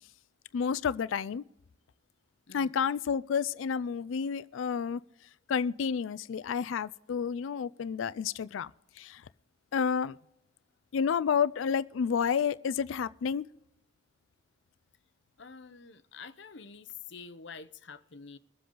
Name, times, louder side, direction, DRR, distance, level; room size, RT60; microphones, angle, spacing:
voice 1, 0.5-1.4 2.5-5.0 5.5-8.7 9.0-9.2 9.7-10.2 10.9-13.5, left 6 dB, 75° left, 0.4 m, -30 dB
voice 2, 15.4-18.4, left 5 dB, 60° left, 0.8 m, -47 dB
23.0 x 7.7 x 3.8 m
head